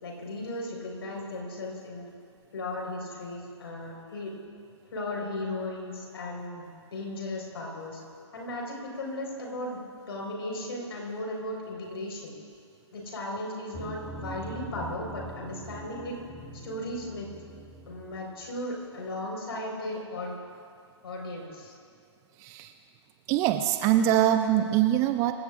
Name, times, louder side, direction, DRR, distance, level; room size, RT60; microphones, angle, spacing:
voice 1, 0.0-2.1 2.5-4.3 4.9-8.0 8.3-9.8 10.1-12.3 12.9-16.2 16.6-17.3 17.9-20.4 21.0-21.7, left 1 dB, 55° left, -1 dB, 4.7 m, -36 dB
sound 1, 13.7-18.5, right 2 dB, 5° left, 1.0 m, -43 dB
voice 2, 22.4-22.7 23.3-25.3, right 11 dB, 20° right, 8 dB, 0.4 m, -23 dB
26.0 x 16.0 x 2.5 m, 2.3 s
figure-of-eight pair, 130°, 15 cm